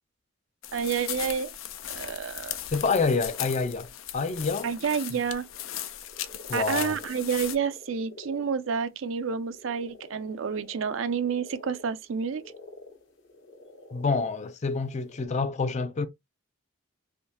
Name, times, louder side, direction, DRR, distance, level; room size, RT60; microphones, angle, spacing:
sound 1, 0.6-7.6, left 11 dB, 90° left, 0.5 m, -37 dB
voice 1, 0.7-1.5 1.9-2.6 4.6-5.4 6.5-12.4, right 6 dB, 85° right, 0.5 m, -29 dB
voice 2, 2.7-4.7 5.1-5.2 6.5-7.0 13.9-16.1, left 4 dB, 35° left, 0.4 m, -27 dB
sound 2, 4.3-15.2, left 2 dB, 65° left, 1.0 m, -49 dB
3.5 x 2.7 x 2.7 m
head